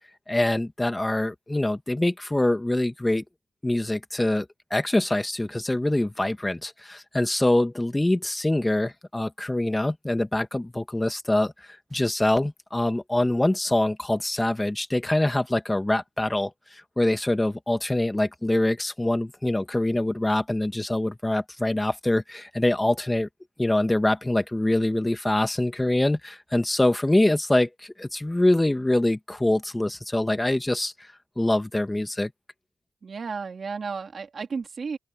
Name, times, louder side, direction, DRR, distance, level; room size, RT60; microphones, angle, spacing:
voice 1, 0.3-3.2 3.6-11.5 11.9-23.3 23.6-31.1 31.4-32.3, left 1 dB, 15° left, 1.9 m, -24 dB
voice 2, 33.0-35.0, right 5 dB, 60° right, 3.4 m, -33 dB
open air
cardioid pair, 60°, 0 cm